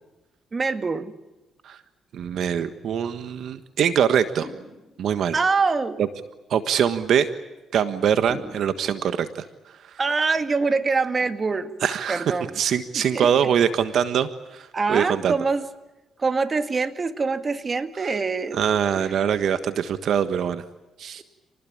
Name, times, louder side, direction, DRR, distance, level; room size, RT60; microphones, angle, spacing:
voice 1, 0.5-1.1 5.3-6.0 10.0-11.7 12.1-12.6 12.9-13.3 14.7-15.7 16.2-18.6 19.0-19.2, right 4 dB, 35° right, 9 dB, 2.1 m, -24 dB
voice 2, 2.1-4.5 5.0-5.3 6.0-6.1 6.5-7.3 7.7-9.3 11.8-12.2 12.6-15.3 18.5-20.6 21.0-21.2, right 8 dB, 70° right, 10 dB, 1.4 m, -23 dB
sound 1, 4.4-5.2 8.3-9.2, left 3 dB, 25° left, 4.7 m, -41 dB
29.0 x 20.0 x 8.6 m, 1.1 s
cardioid pair, 90°, 0 cm